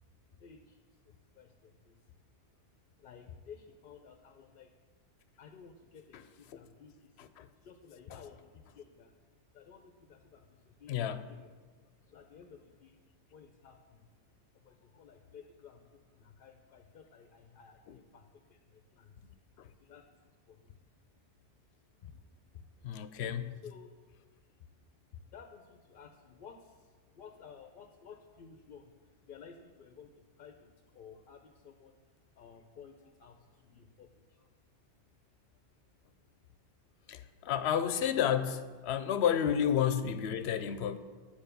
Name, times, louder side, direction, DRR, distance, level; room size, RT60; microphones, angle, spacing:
voice 1, 0.3-2.2 3.0-4.7 5.4-9.1 9.5-11.5 11.9-14.1 14.5-19.3 19.7-21.0 21.9-23.0 23.6-24.2 24.6-32.0 32.4-34.6, left 6 dB, 60° left, 0.7 m, -55 dB
voice 2, 10.9-11.2 17.9-18.0 19.2-19.3 19.6-19.7 22.8-23.6 37.1-41.0, left 9 dB, 90° left, 0.8 m, -31 dB
8.9 x 5.0 x 6.8 m
omnidirectional pair, 1.1 m